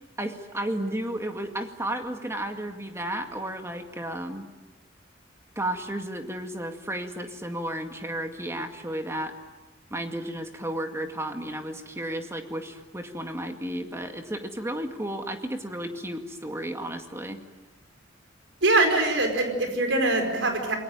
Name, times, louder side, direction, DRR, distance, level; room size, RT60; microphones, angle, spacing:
voice 1, 0.2-4.5 5.6-9.3 9.9-17.4, right 1 dB, 15° right, 5 dB, 2.1 m, -33 dB
voice 2, 18.6-20.8, right 2 dB, 75° right, 5 dB, 5.0 m, -23 dB
28.5 x 22.5 x 9.0 m, 1.1 s
head